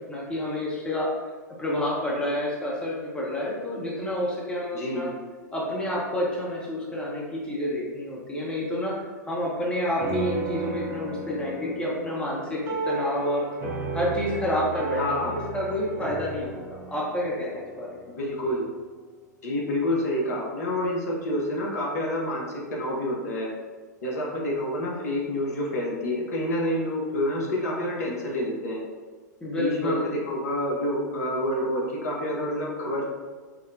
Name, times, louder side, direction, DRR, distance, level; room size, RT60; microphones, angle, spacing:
voice 1, 0.1-1.1 1.6-5.1 5.5-8.9 9.3-13.5 13.9-17.9 29.4-30.1, left 1 dB, 10° left, -5 dB, 0.7 m, -29 dB
voice 2, 4.7-5.1 14.9-15.4 18.2-18.7 19.4-22.4 22.7-23.5 24.0-28.8 29.6-33.1, left 1 dB, 60° left, -2 dB, 0.8 m, -28 dB
sound 1, 10.0-18.7, right 3 dB, 25° right, 0.6 m, -34 dB
5.0 x 2.1 x 2.6 m, 1.4 s
figure-of-eight pair, 100°, 10 cm